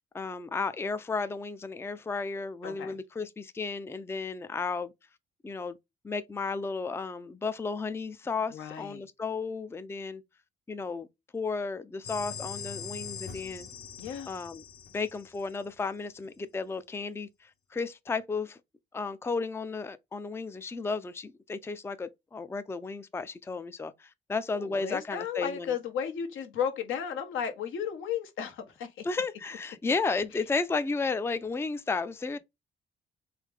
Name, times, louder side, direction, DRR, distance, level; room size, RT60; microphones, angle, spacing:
voice 1, 0.1-4.9 5.4-5.8 6.0-10.2 10.7-11.1 11.3-13.7 14.3-14.6 14.9-18.6 18.9-25.7 29.0-32.4, left 4 dB, 10° left, 0.4 m, -33 dB
voice 2, 2.6-3.0 8.5-9.0 14.0-14.3 24.6-29.0, left 8 dB, 80° left, 1.3 m, -34 dB
sound 1, 12.0-15.7, left 7 dB, 55° left, 1.1 m, -42 dB
3.6 x 3.3 x 3.3 m
cardioid pair, 90°, 20 cm